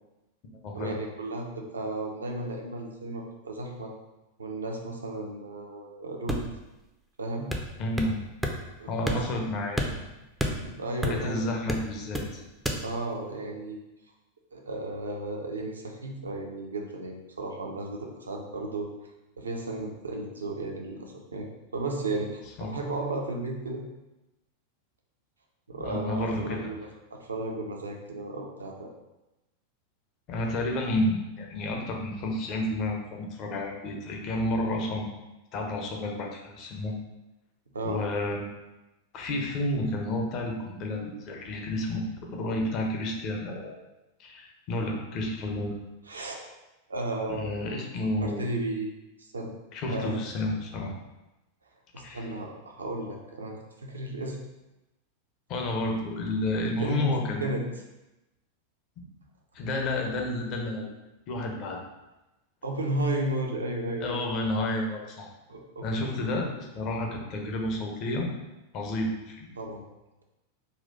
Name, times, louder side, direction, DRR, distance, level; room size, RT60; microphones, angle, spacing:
voice 1, 0.7-3.9 4.4-6.4 7.2-7.5 8.8-9.2 10.6-11.5 12.8-13.8 14.5-18.9 19.4-21.5 21.7-23.8 25.7-28.9 37.7-38.0 46.1-46.4 46.9-47.8 48.2-48.9 49.2-49.5 49.9-50.2 51.9-54.4 56.8-57.1 57.4-57.6 62.6-64.1 65.5-66.3 69.6-69.8, right 2 dB, 75° right, 1 dB, 0.6 m, -34 dB
sound 1, 6.3-6.7 7.5-8.2 8.4-8.6 9.1-9.4 9.8-11.3 11.7-12.3 12.6-12.8, equal, 5° right, 0.5 m, -30 dB
voice 2, 7.8-8.2 8.9-9.8 11.1-12.4 22.6-22.7 25.8-26.7 30.3-35.1 35.5-36.9 37.8-38.6 39.1-42.0 42.4-43.8 44.2-45.8 47.3-48.4 49.7-50.9 52.0-52.3 55.5-57.6 59.5-60.8 61.3-61.8 64.0-65.3 65.8-68.3 68.7-69.5, left 1 dB, 40° left, 1 dB, 0.7 m, -30 dB
4.1 x 2.4 x 4.0 m, 1.0 s
figure-of-eight pair, 90°, 0 cm